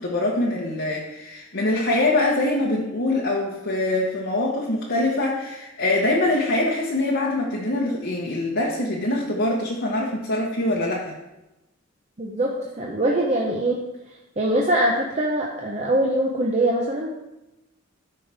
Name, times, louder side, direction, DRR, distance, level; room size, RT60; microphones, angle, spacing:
voice 1, 0.0-11.1, left 2 dB, 60° left, -4 dB, 1.1 m, -24 dB
voice 2, 12.2-13.8 14.4-17.2, right 1 dB, 35° right, -2 dB, 0.9 m, -23 dB
13.0 x 5.6 x 3.5 m, 0.97 s
head